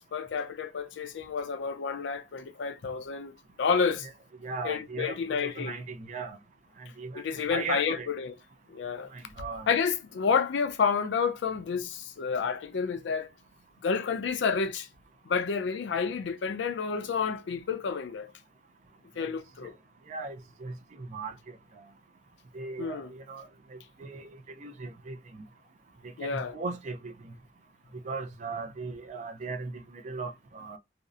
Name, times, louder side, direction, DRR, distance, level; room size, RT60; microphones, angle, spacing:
voice 1, 0.0-4.1 4.6-5.7 7.1-8.3 8.7-9.1 9.7-13.3 13.8-14.9 15.3-18.3 19.2-19.7 22.8-23.1 26.2-26.5, left 6 dB, 75° left, 0.4 m, -30 dB
voice 2, 4.4-6.4 6.8-7.2 7.5-8.1 9.1-9.7 19.2-19.3 20.1-21.3 22.5-25.2 26.0-27.1 28.0-30.8, right 4 dB, 40° right, 0.4 m, -38 dB
2.6 x 2.0 x 2.4 m
head